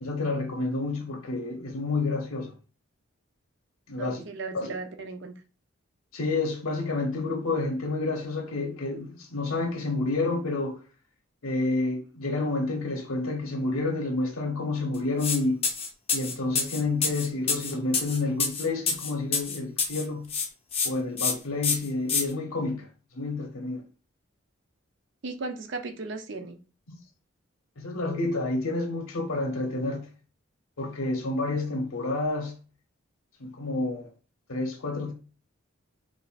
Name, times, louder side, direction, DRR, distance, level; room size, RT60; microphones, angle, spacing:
voice 1, 0.0-2.5 3.9-4.2 4.5-4.7 6.1-10.8 11.4-15.6 16.1-20.3 20.8-22.9 23.1-23.8 26.9-27.0 27.8-30.0 30.8-32.5 33.4-34.1 34.5-35.1, left 2 dB, 90° left, 0.8 m, -29 dB
voice 2, 4.0-5.4 25.2-26.6, right 3 dB, 60° right, 0.5 m, -36 dB
sound 1, 15.2-15.4 15.6-20.0 20.3-20.9 21.2-21.3 21.6-22.2, left 5 dB, 30° left, 0.5 m, -27 dB
5.3 x 2.5 x 2.4 m
head